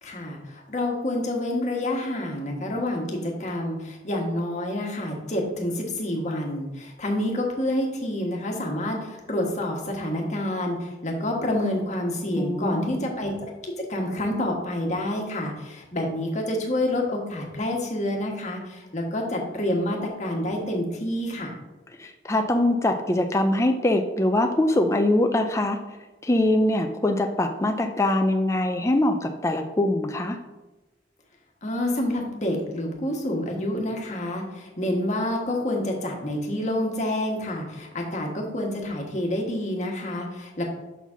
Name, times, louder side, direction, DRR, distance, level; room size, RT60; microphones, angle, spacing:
voice 1, 0.0-21.6 31.6-40.6, left 1 dB, 40° left, 0 dB, 1.3 m, -28 dB
voice 2, 12.4-13.0 22.0-25.8 26.2-30.4, left 1 dB, 15° left, 5 dB, 0.4 m, -23 dB
5.6 x 4.0 x 6.0 m, 1.1 s
head